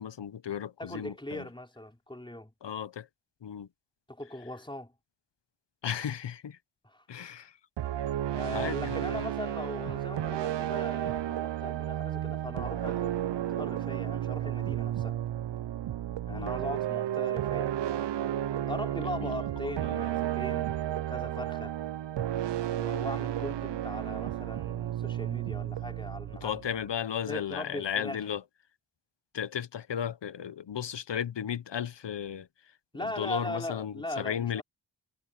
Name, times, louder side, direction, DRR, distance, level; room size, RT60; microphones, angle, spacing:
voice 1, 0.0-1.5 2.6-3.1 3.4-3.7 5.8-6.6 7.1-7.5 8.5-9.2 16.3-16.5 19.2-19.4 19.6-19.9 26.4-28.4 29.3-32.5 33.0-34.6, left 8 dB, 75° left, 0.9 m, -35 dB
voice 2, 0.8-2.5 4.1-4.9 6.8-7.0 8.3-15.2 16.3-17.8 18.7-21.7 22.7-26.7 27.3-28.2 32.9-34.6, left 1 dB, 10° left, 3.9 m, -40 dB
sound 1, 7.8-26.9, right 12 dB, 75° right, 0.5 m, -32 dB
wide cardioid pair, 85°, 43 cm